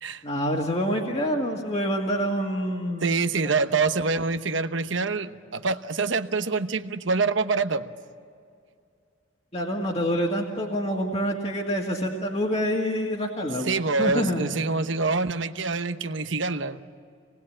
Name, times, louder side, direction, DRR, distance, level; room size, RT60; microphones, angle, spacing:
voice 1, 0.2-3.3 9.5-14.5, equal, 30° left, 0 dB, 2.0 m, -27 dB
voice 2, 3.0-7.8 13.7-16.8, right 4 dB, 70° right, 10 dB, 1.0 m, -26 dB
27.0 x 19.5 x 8.7 m, 2.3 s
head